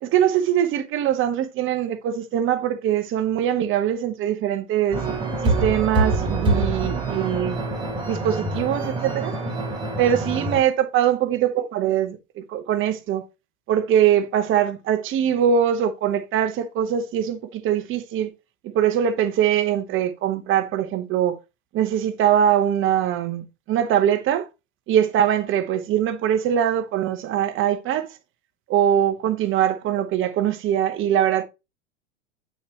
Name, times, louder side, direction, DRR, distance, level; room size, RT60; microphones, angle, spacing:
voice 1, 0.0-5.0 5.4-7.6 8.0-9.3 10.0-13.2 13.7-18.3 18.6-21.4 21.7-24.5 24.9-28.1 28.7-31.4, right 10 dB, 30° right, 0.9 m, -22 dB
sound 1, 4.9-10.6, right 2 dB, 10° right, 2.2 m, -25 dB
8.4 x 4.5 x 2.9 m
hypercardioid pair, 105°, 38 cm